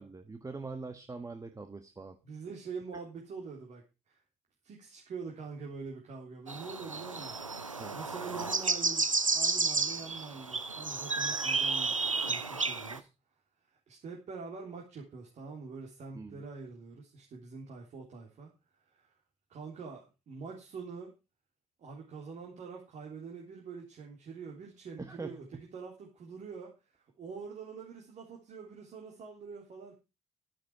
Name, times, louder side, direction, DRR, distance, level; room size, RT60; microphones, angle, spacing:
voice 1, 0.0-2.2 7.8-8.0 16.1-16.4 25.0-25.4, right 3 dB, 20° right, 7 dB, 1.5 m, -43 dB
voice 2, 2.2-4.2 4.6-7.4 7.9-13.1 13.9-18.5 18.9-19.1 19.5-21.1 21.8-30.0, right 5 dB, 45° right, 0 dB, 3.6 m, -45 dB
sound 1, 6.5-13.0, right 4 dB, 90° right, 0.7 m, -32 dB
12.5 x 11.0 x 4.9 m, 0.29 s
figure-of-eight pair, 45°, 16 cm